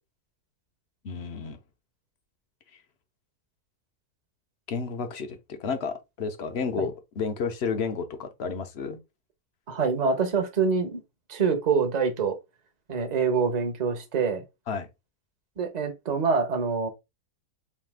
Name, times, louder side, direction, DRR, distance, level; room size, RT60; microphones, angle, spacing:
voice 1, 1.0-1.6 4.7-9.0 14.7-14.9, left 5 dB, 55° left, 0.7 m, -31 dB
voice 2, 9.7-11.0 11.3-12.4 12.9-14.4 15.6-16.9, right 5 dB, 40° right, 0.7 m, -25 dB
4.1 x 2.7 x 3.4 m
omnidirectional pair, 1.7 m